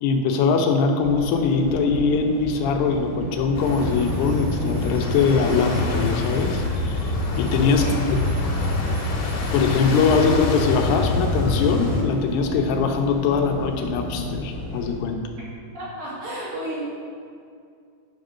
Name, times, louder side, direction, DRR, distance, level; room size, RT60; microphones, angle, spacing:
voice 1, 0.0-8.2 9.5-15.3, left 5 dB, 90° left, 4 dB, 2.9 m, -22 dB
sound 1, 1.0-15.0, left 2 dB, 30° left, 1.0 m, -34 dB
sound 2, 3.5-12.0, left 2 dB, 70° left, 3.3 m, -26 dB
sound 3, 3.6-10.4, equal, 90° right, 4.5 m, -38 dB
voice 2, 15.7-16.8, right 1 dB, 65° right, -7 dB, 4.0 m, -31 dB
10.0 x 5.3 x 6.2 m, 2.3 s
omnidirectional pair, 4.6 m